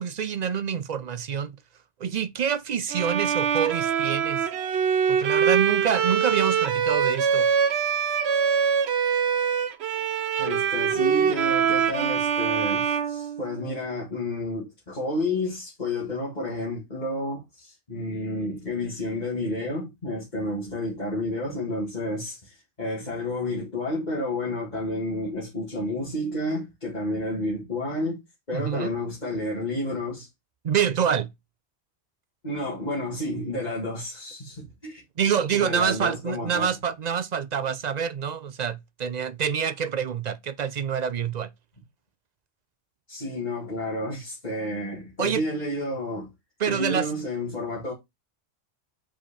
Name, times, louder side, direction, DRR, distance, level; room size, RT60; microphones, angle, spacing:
voice 1, 0.0-1.6 2.0-4.5 5.1-7.5 28.5-28.9 30.6-31.3 35.2-41.5 45.2-45.4 46.6-47.1, right 8 dB, 55° right, 0.5 m, -26 dB
Bowed string instrument, 2.9-13.9, right 7 dB, 80° right, 0.9 m, -24 dB
voice 2, 10.4-28.2 28.5-30.3 32.4-35.0 35.5-36.7 43.1-46.3 46.7-47.9, left 1 dB, 40° left, 2.3 m, -30 dB
5.6 x 5.0 x 4.2 m
omnidirectional pair, 1.1 m